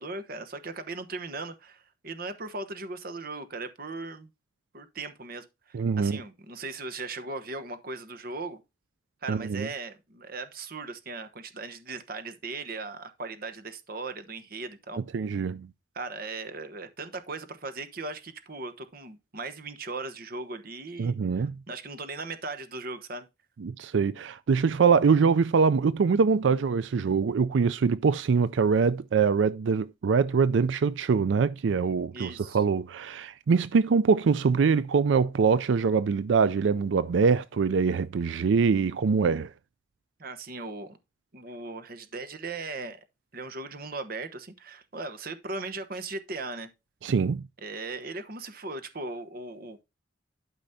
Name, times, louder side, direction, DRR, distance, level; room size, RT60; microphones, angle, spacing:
voice 1, 0.0-4.3 4.7-8.6 9.2-15.0 15.9-23.3 32.1-32.6 40.2-41.0 41.3-43.0 43.3-46.7 47.6-49.8, right 3 dB, 50° right, 1.1 m, -38 dB
voice 2, 5.7-6.2 9.3-9.7 15.1-15.7 21.0-21.5 23.6-39.5 47.0-47.4, right 5 dB, 75° right, 0.4 m, -24 dB
12.0 x 5.2 x 2.7 m
head